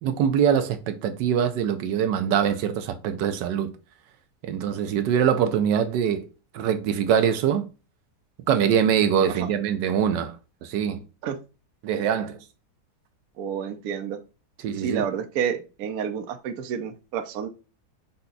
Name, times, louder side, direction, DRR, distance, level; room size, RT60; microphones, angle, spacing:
voice 1, 0.0-3.7 4.4-6.3 6.5-7.6 8.5-10.3 10.7-11.0 11.8-12.4 14.6-15.0, right 8 dB, 85° right, 1.3 m, -23 dB
voice 2, 13.4-14.2 14.8-17.5, right 8 dB, 65° right, 1.0 m, -29 dB
5.6 x 2.3 x 3.8 m
omnidirectional pair, 1.9 m